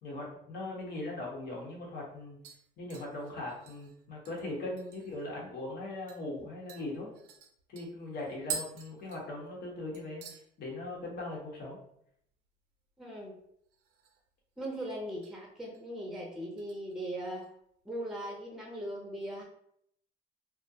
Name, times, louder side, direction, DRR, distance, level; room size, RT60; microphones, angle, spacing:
voice 1, 0.0-2.4 2.8-7.1 7.7-10.2 10.6-11.8, left 2 dB, 65° left, -2 dB, 0.9 m, -40 dB
sound 1, 1.4-1.5 1.8-2.1 2.4-5.3 5.6-5.7 6.1-6.2 6.7-9.7 9.9-10.4 10.8-11.2 11.5-11.6 13.7-14.3 14.6-15.3 15.7-16.0 16.6-17.5 17.8-17.9, right 6 dB, 80° right, 0.5 m, -46 dB
voice 2, 13.0-13.3 14.6-17.5 17.8-19.4, right 1 dB, 5° right, -1 dB, 0.5 m, -39 dB
2.4 x 2.1 x 2.6 m, 0.71 s
cardioid pair, 110°, 17 cm